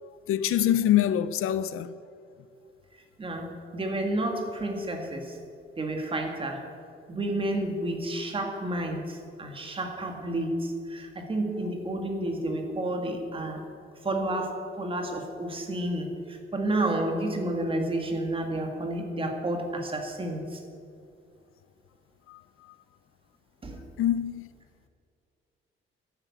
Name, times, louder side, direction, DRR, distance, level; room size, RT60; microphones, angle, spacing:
voice 1, 0.0-1.9 22.3-22.4 24.0-24.5, left 11 dB, 85° left, 0.6 m, -25 dB
voice 2, 3.2-5.4 5.8-6.7 7.1-13.6 14.0-20.6 23.6-23.8, right 1 dB, 25° right, 1.8 m, -30 dB
11.5 x 9.9 x 8.1 m
cardioid pair, 160°, 21 cm